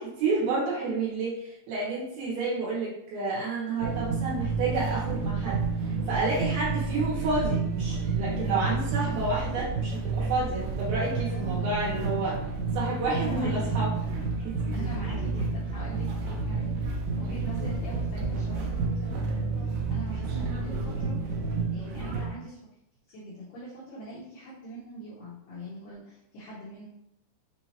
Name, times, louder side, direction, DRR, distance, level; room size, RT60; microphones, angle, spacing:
voice 1, 0.0-5.6 6.1-12.4 12.7-13.9 14.7-14.8 17.2-17.3, right 3 dB, 65° right, -6 dB, 2.9 m, -30 dB
sound 1, 3.8-22.3, right 4 dB, 85° right, 1.9 m, -30 dB
voice 2, 8.9-9.3 11.3-11.6 13.2-14.1 14.7-21.2 21.7-22.6 23.1-26.9, right 2 dB, 75° left, -8 dB, 2.0 m, -42 dB
6.5 x 2.7 x 2.9 m, 0.80 s
omnidirectional pair, 5.0 m